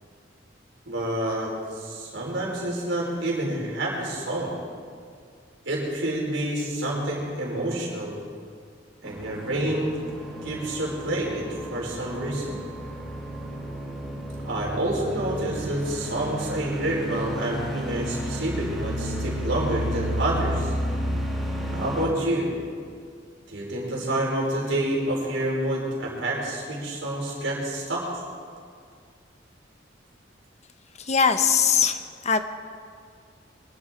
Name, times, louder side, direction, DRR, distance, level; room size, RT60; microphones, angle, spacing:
voice 1, 0.9-4.5 5.6-8.2 9.0-9.9 10.4-11.4 11.7-12.6 14.4-20.7 21.7-22.5 23.5-28.2, right 1 dB, 90° right, -3 dB, 4.9 m, -28 dB
sound 1, 9.0-22.1, equal, ahead, 2.7 m, -32 dB
voice 2, 31.0-32.4, left 6 dB, 35° left, 9 dB, 0.8 m, -21 dB
23.5 x 12.0 x 4.6 m, 2.1 s
head